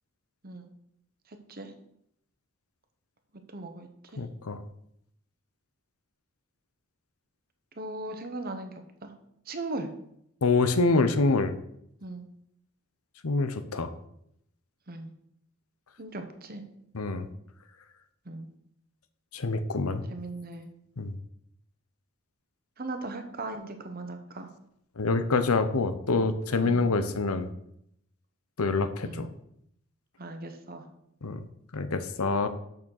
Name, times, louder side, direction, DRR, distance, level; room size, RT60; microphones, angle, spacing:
voice 1, 1.3-1.7 3.5-4.3 7.7-9.1 9.4-9.9 12.0-12.3 14.9-15.1 16.0-16.6 18.2-18.5 20.1-20.7 22.8-24.5 26.6-26.9 29.0-29.3 30.2-30.9, right 2 dB, 45° right, 6 dB, 1.1 m, -38 dB
voice 2, 4.2-4.6 10.4-11.5 13.2-13.9 16.9-17.3 19.3-20.0 21.0-21.1 25.0-27.5 28.6-29.3 31.2-31.4 31.7-32.5, left 3 dB, 90° left, 11 dB, 0.8 m, -26 dB
6.6 x 6.2 x 6.5 m, 0.75 s
head